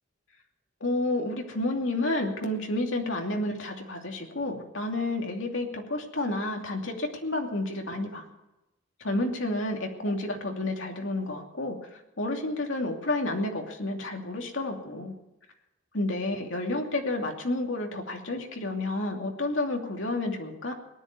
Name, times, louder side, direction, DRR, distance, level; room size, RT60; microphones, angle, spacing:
voice 1, 0.8-8.2 9.0-15.1 15.9-20.7, left 2 dB, 65° left, 2 dB, 2.7 m, -30 dB
18.5 x 11.0 x 6.7 m, 0.96 s
head